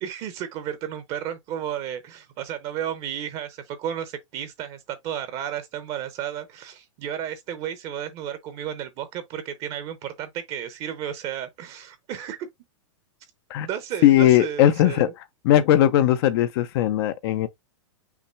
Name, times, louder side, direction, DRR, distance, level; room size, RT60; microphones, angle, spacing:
voice 1, 0.0-12.5 13.6-15.1, right 10 dB, 35° right, 0.9 m, -33 dB
voice 2, 14.0-15.1 15.4-17.5, left 12 dB, 50° left, 0.7 m, -18 dB
5.8 x 2.0 x 4.5 m
hypercardioid pair, 135°, 16 cm